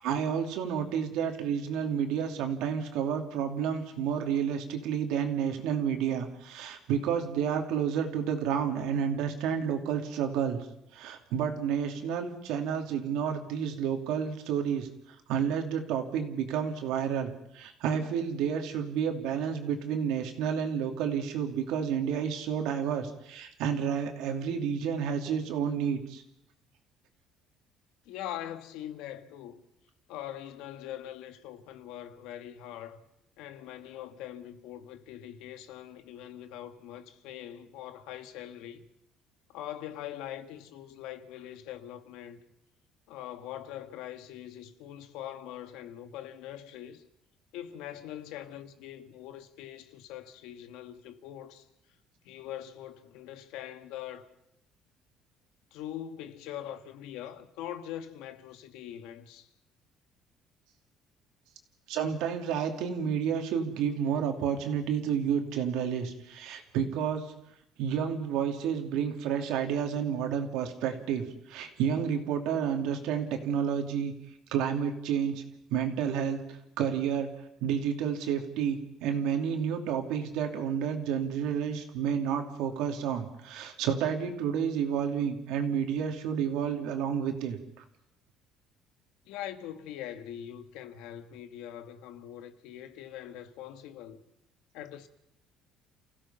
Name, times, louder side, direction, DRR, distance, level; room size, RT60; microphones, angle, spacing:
voice 1, 0.0-10.6 10.9-14.9 15.3-26.2 61.9-67.3 67.8-74.1 74.5-75.4 75.7-76.4 76.8-77.3 77.6-87.8, right 8 dB, 80° right, 2.8 m, -30 dB
voice 2, 28.0-29.6 30.1-33.0 33.4-38.9 39.5-42.4 43.1-47.0 47.5-51.7 52.2-54.3 55.7-59.5 89.2-94.2 94.7-95.1, left 11 dB, 90° left, 1.6 m, -42 dB
30.0 x 16.0 x 5.7 m
cardioid pair, 140°, 0 cm